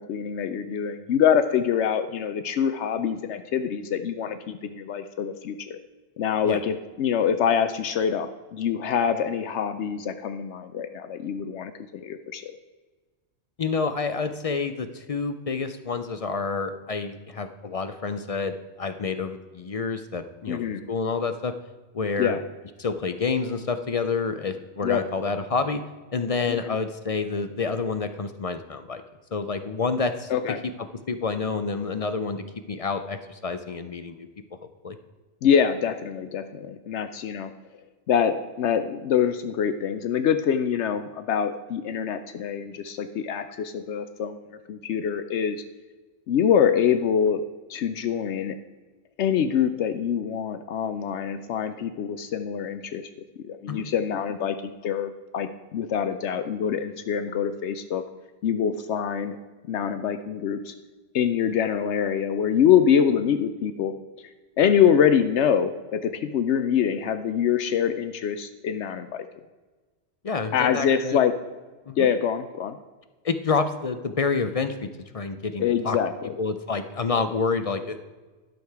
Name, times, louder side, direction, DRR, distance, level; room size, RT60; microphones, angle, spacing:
voice 1, 0.0-5.8 6.2-12.5 20.5-20.8 22.2-22.4 24.8-25.0 26.5-26.8 30.3-30.6 35.4-37.5 38.1-44.4 44.7-45.6 46.3-47.4 47.7-48.6 49.2-53.1 53.4-58.0 58.4-59.4 59.7-60.7 61.1-63.9 64.6-69.3 70.5-71.3 72.0-72.8 75.6-76.3, left 8 dB, 75° left, 9 dB, 0.9 m, -25 dB
voice 2, 13.6-20.6 20.9-21.5 21.9-22.4 22.8-25.8 26.1-29.0 29.3-30.3 30.8-34.3 34.8-35.0 53.7-53.9 70.2-71.2 71.9-72.1 73.2-76.0 76.4-78.0, left 4 dB, 50° left, 9 dB, 0.4 m, -28 dB
12.0 x 6.6 x 4.7 m, 1.3 s
omnidirectional pair, 1.2 m